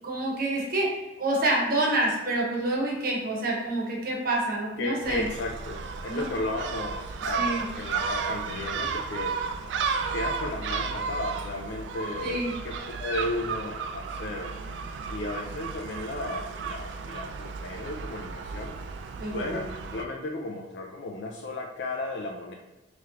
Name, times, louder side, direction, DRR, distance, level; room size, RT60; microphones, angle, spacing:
voice 1, 0.0-5.3 6.1-6.2 7.3-7.6 12.2-12.5 19.2-19.6, right 1 dB, 55° right, -2 dB, 1.0 m, -27 dB
voice 2, 4.8-9.4 10.1-14.6 15.1-18.8 19.3-19.7 19.9-22.5, left 2 dB, 70° left, 0 dB, 0.4 m, -34 dB
Gull seagull, 5.0-20.0, right 5 dB, 90° right, 0.3 m, -33 dB
3.2 x 3.0 x 3.6 m, 1.1 s
head